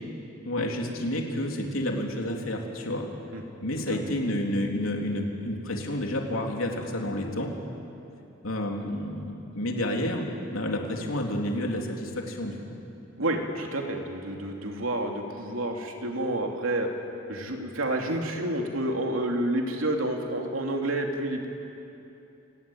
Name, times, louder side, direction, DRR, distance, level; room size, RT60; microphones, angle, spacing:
voice 1, 0.5-3.1 3.6-7.5 8.4-12.6, left 1 dB, 85° left, 1 dB, 3.5 m, -30 dB
voice 2, 13.2-16.9 17.3-21.5, right 1 dB, 80° right, 2 dB, 3.0 m, -29 dB
28.5 x 18.5 x 9.2 m, 2.8 s
head